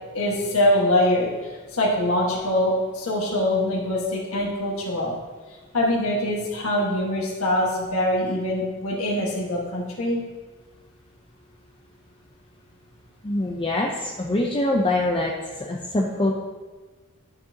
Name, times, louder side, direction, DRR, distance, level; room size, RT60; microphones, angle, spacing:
voice 1, 0.1-1.3 1.7-5.1 5.7-10.2, left 1 dB, 75° left, -5 dB, 1.6 m, -23 dB
voice 2, 13.2-15.3 15.6-16.3, left 1 dB, 25° left, -1 dB, 0.6 m, -24 dB
12.5 x 6.5 x 2.9 m, 1.3 s
head